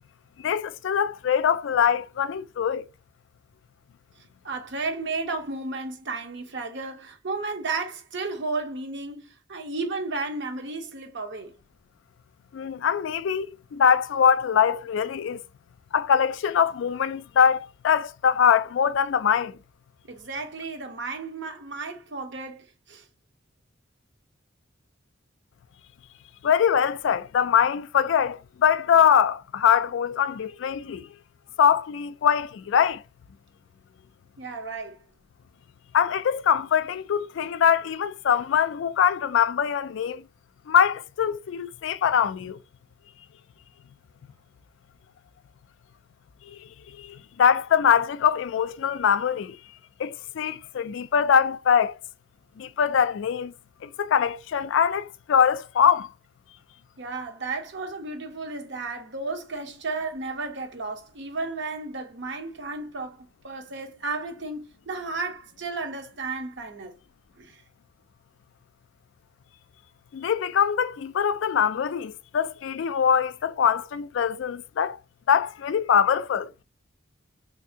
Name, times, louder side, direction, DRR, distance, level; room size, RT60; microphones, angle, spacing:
voice 1, 0.4-2.8 12.5-13.5 13.7-15.4 15.9-19.6 26.4-31.1 31.6-33.0 35.9-40.2 40.7-42.6 46.5-46.6 47.0-49.6 50.0-51.9 52.6-53.5 53.8-56.1 70.1-75.0 75.3-76.5, left 8 dB, 65° left, 0.3 m, -23 dB
voice 2, 4.4-11.5 20.1-23.0 34.4-35.0 57.0-66.9 67.4-67.6, right 3 dB, 60° right, 0.8 m, -33 dB
3.4 x 2.6 x 2.8 m
head